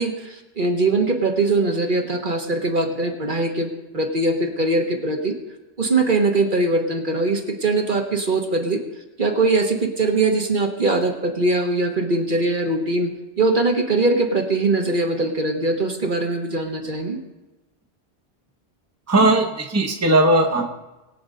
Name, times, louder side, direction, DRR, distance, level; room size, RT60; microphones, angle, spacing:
voice 1, 0.0-5.4 5.8-8.8 9.2-17.2, right 2 dB, 50° right, 3 dB, 1.5 m, -21 dB
voice 2, 19.1-20.7, right 2 dB, 15° right, 2 dB, 1.0 m, -18 dB
21.5 x 7.8 x 3.9 m, 1.1 s
omnidirectional pair, 1.1 m